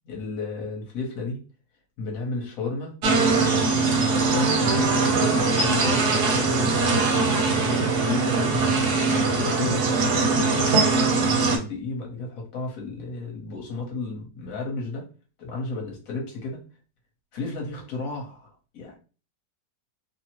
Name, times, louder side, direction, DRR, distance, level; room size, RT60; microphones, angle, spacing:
voice 1, 0.0-1.4 2.0-3.0 4.1-7.1 7.4-8.6 9.0-15.0 15.4-16.6 17.3-18.5 18.7-19.0, left 3 dB, 60° left, 0 dB, 1.2 m, -33 dB
sound 1, 3.0-11.6, right 3 dB, 65° right, 0.7 m, -21 dB
3.0 x 2.0 x 2.9 m, 0.35 s
omnidirectional pair, 1.8 m